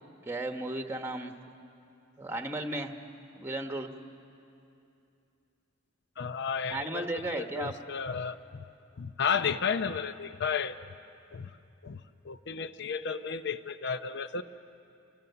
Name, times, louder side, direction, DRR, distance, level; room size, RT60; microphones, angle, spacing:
voice 1, 0.2-1.3 2.2-2.9 3.3-3.9 6.7-7.7, right 2 dB, 10° right, 5 dB, 1.1 m, -34 dB
voice 2, 6.2-8.4 9.0-10.8 11.3-11.5 11.8-14.4, left 6 dB, 60° left, 11 dB, 0.7 m, -33 dB
30.0 x 24.0 x 6.9 m, 2.7 s
head